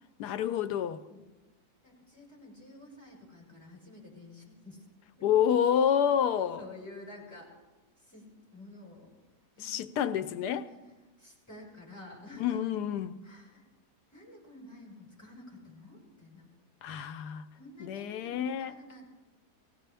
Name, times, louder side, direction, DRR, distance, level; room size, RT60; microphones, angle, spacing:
voice 1, 0.2-1.0 5.2-6.7 9.6-10.7 12.4-13.2 16.8-17.4 17.8-18.7, left 9 dB, 90° left, 1.2 m, -28 dB
voice 2, 1.8-4.8 5.2-5.3 6.2-7.5 8.0-9.1 9.6-10.1 10.4-10.9 11.2-12.6 13.2-13.7 14.1-16.5 17.5-19.0, left 1 dB, 10° left, 5.6 m, -50 dB
19.0 x 16.5 x 3.4 m
omnidirectional pair, 1.7 m